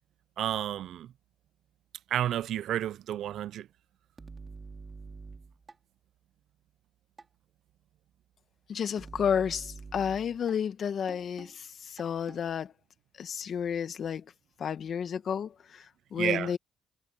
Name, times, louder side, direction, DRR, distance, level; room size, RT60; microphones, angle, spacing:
voice 1, 0.4-1.1 2.1-3.7 16.2-16.5, right 11 dB, 75° right, 0.4 m, -31 dB
sound 1, 4.2-5.7 7.2-7.3 9.0-10.5 11.1-11.5 12.0-12.4, right 4 dB, 30° right, 3.4 m, -46 dB
voice 2, 8.7-12.7 13.2-14.3 14.6-16.6, left 7 dB, 60° left, 1.7 m, -31 dB
cardioid pair, 90°, 0 cm